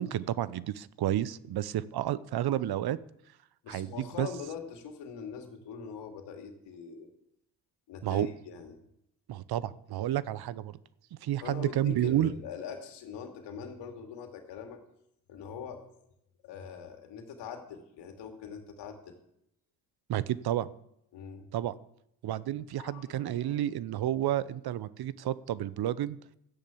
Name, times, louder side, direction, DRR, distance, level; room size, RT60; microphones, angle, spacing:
voice 1, 0.0-3.0 3.7-4.3 8.0-8.3 9.3-10.8 11.2-12.3 20.1-20.7 21.5-21.7 22.2-26.2, right 12 dB, 65° right, 18 dB, 0.9 m, -30 dB
voice 2, 3.6-7.1 7.9-8.8 11.4-14.8 15.3-15.8 16.4-19.1 21.1-21.5 22.8-23.6, left 6 dB, 80° left, 5 dB, 2.6 m, -43 dB
14.0 x 10.5 x 7.2 m, 0.78 s
supercardioid pair, 55°, 41 cm